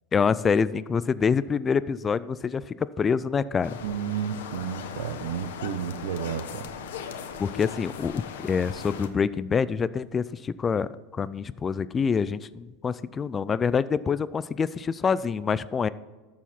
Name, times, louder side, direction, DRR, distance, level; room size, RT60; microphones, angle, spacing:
voice 1, 0.1-3.8 7.4-15.9, left 6 dB, 20° left, 17 dB, 0.3 m, -26 dB
sound 1, 3.6-9.1, left 7 dB, 90° left, 1.0 m, -39 dB
voice 2, 3.8-6.7, right 9 dB, 90° right, 13 dB, 0.8 m, -32 dB
13.0 x 7.3 x 4.3 m, 1.3 s
supercardioid pair, 150°, 0 cm